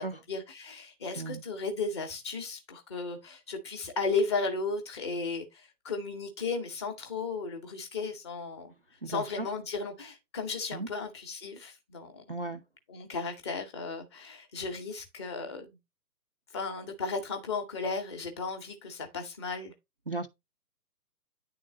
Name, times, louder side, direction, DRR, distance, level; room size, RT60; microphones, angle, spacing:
voice 1, 0.0-8.7 9.1-12.2 12.9-15.8 16.5-19.7, left 4 dB, 15° left, 0.8 m, -35 dB
voice 2, 9.0-9.5 10.7-10.9 12.3-12.6 20.1-20.3, right 3 dB, 40° right, 0.4 m, -36 dB
9.4 x 3.8 x 3.9 m
figure-of-eight pair, 135°, 49 cm